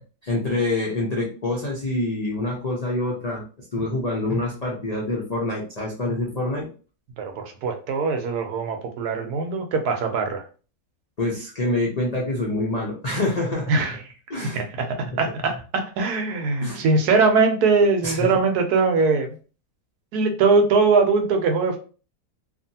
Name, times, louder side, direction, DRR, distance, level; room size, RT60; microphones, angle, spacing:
voice 1, 0.2-3.4 3.7-6.7 11.2-13.7 14.3-14.6 16.6-16.8 18.0-18.3, left 2 dB, 70° left, -4 dB, 0.3 m, -26 dB
voice 2, 7.2-10.4 13.7-14.0 14.5-19.4 20.1-21.8, right 4 dB, 70° right, 5 dB, 1.1 m, -21 dB
2.8 x 2.5 x 2.7 m, 0.36 s
omnidirectional pair, 1.8 m